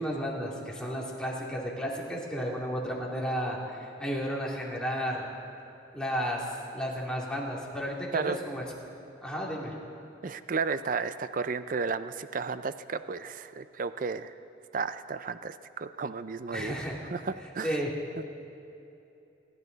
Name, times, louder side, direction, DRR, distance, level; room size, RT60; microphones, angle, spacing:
voice 1, 0.0-5.3 5.9-8.6 9.2-9.7 16.5-17.0 17.6-17.9, equal, 5° left, -4 dB, 2.6 m, -33 dB
voice 2, 10.2-14.3 14.7-16.8 17.1-17.7, right 5 dB, 50° right, 12 dB, 0.5 m, -33 dB
27.5 x 12.0 x 4.0 m, 2.8 s
head